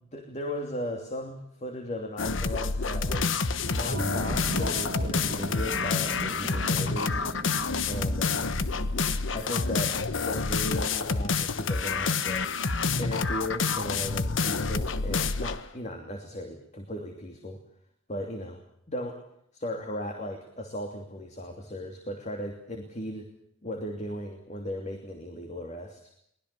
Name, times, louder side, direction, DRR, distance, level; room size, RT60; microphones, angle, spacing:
voice 1, 0.1-7.2 7.9-8.6 9.3-12.5 13.0-17.6 18.1-18.6 18.9-19.2 19.5-23.3 23.6-26.0, left 1 dB, 35° left, 4 dB, 2.9 m, -36 dB
Grit Music Loop, 2.2-15.6, left 4 dB, 80° left, 1.2 m, -28 dB
sound 1, 3.9-12.2, right 1 dB, 50° right, 1.5 m, -39 dB
23.5 x 20.0 x 6.9 m, 0.71 s
head